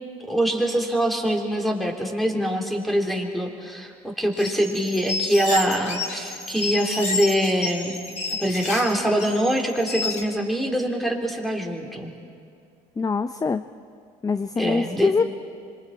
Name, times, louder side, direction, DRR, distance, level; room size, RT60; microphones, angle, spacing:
voice 1, 0.3-8.0 8.4-12.1 14.6-15.1, equal, ahead, 1 dB, 3.5 m, -24 dB
sound 1, 4.3-10.2, left 3 dB, 40° left, 3.2 m, -30 dB
voice 2, 13.0-13.6 14.2-15.2, left 4 dB, 20° left, 11 dB, 0.6 m, -23 dB
26.0 x 24.0 x 4.7 m, 2.3 s
hypercardioid pair, 70°, 19 cm